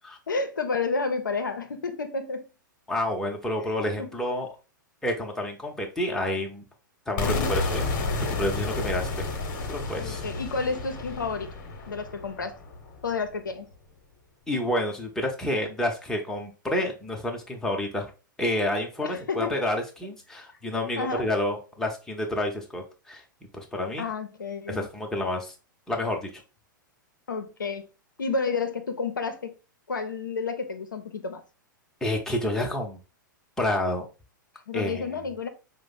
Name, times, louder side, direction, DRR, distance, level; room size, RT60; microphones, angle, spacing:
voice 1, 0.3-2.5 3.6-4.1 7.2-7.6 10.0-11.5 11.9-12.6 13.0-13.7 19.0-19.6 21.0-21.3 24.0-24.9 27.3-27.9 28.2-29.5 29.9-31.4 34.7-35.5, left 4 dB, 70° left, 0.5 m, -31 dB
voice 2, 2.9-4.5 5.0-6.6 7.1-7.8 8.3-9.2 9.7-10.2 14.5-18.1 18.4-23.2 23.5-24.1 24.7-25.5 25.9-26.4 32.0-33.0 33.6-34.1 34.7-35.1, left 1 dB, 5° left, 0.7 m, -29 dB
sound 1, 7.2-13.0, left 3 dB, 40° left, 0.9 m, -31 dB
4.8 x 2.0 x 3.8 m
figure-of-eight pair, 100°, 11 cm